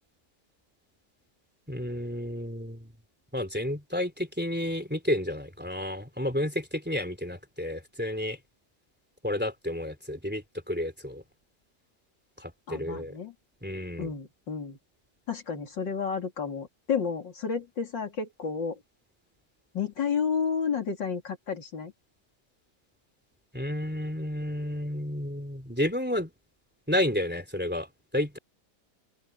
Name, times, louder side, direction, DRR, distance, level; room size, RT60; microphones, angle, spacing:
voice 1, 1.7-2.9 3.3-8.4 9.2-11.2 12.4-13.2 13.6-14.1 23.5-26.3 26.9-28.4, left 1 dB, 5° right, 3.4 m, -31 dB
voice 2, 12.7-13.3 14.0-14.8 15.3-18.8 19.7-21.9, left 6 dB, 80° left, 3.7 m, -31 dB
open air
omnidirectional pair, 1.9 m